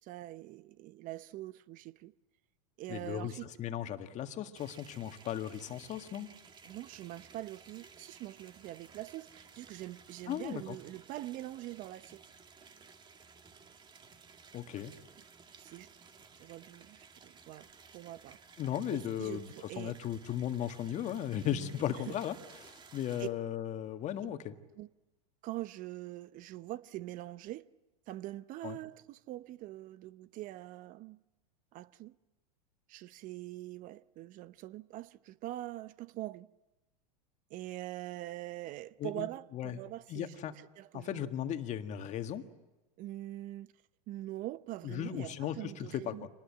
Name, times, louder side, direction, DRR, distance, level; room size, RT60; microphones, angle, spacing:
voice 1, 0.0-2.1 2.8-3.5 6.7-12.2 15.6-15.9 16.4-17.7 17.9-18.4 18.9-19.9 21.5-22.1 23.2-23.3 24.8-24.9 25.4-27.7 28.1-31.2 31.7-32.1 32.9-36.5 37.5-40.3 40.8-41.3 43.0-43.7 44.1-46.3, right 16 dB, 40° right, 0.7 m, -43 dB
voice 2, 2.9-3.3 3.6-6.3 10.3-10.8 14.5-14.9 18.6-19.5 19.8-22.3 22.6-24.6 28.6-28.8 39.0-39.3 39.5-39.8 40.1-40.5 40.9-42.4 44.8-46.3, left 10 dB, 35° left, 1.8 m, -36 dB
sound 1, 4.5-23.3, right 5 dB, 20° right, 2.0 m, -57 dB
26.5 x 20.0 x 8.7 m
hypercardioid pair, 110°, 20 cm